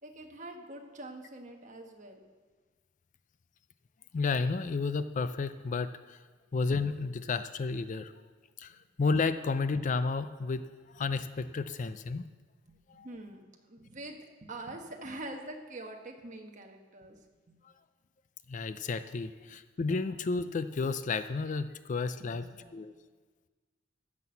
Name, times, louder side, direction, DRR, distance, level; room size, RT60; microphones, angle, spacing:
voice 1, 0.0-2.2 12.7-17.6 22.2-22.9, right 2 dB, 40° right, 3 dB, 1.3 m, -45 dB
voice 2, 4.1-6.2 6.5-8.1 8.6-10.7 10.9-12.3 12.9-13.1 18.5-22.4 22.7-22.9, left 4 dB, 40° left, 12 dB, 0.4 m, -32 dB
15.0 x 6.1 x 6.9 m, 1.4 s
head